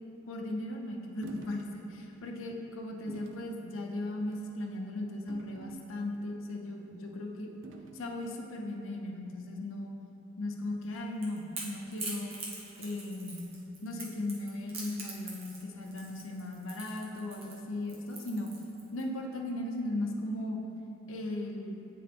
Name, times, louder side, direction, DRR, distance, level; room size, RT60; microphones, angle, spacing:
voice 1, 0.3-7.5 7.9-9.9 10.4-12.4 12.8-13.5 13.8-18.5 18.9-20.6 21.1-21.8, left 1 dB, 90° left, 1 dB, 0.6 m, -37 dB
sound 1, 1.2-1.7 2.1-2.3 3.1-3.4 4.2-4.5 5.3-6.2 7.6-8.1, right 4 dB, 75° right, 0.5 m, -47 dB
Crackle / Crack, 10.8-19.0, right 2 dB, 30° right, 0.9 m, -43 dB
8.8 x 3.8 x 3.4 m, 2.7 s
head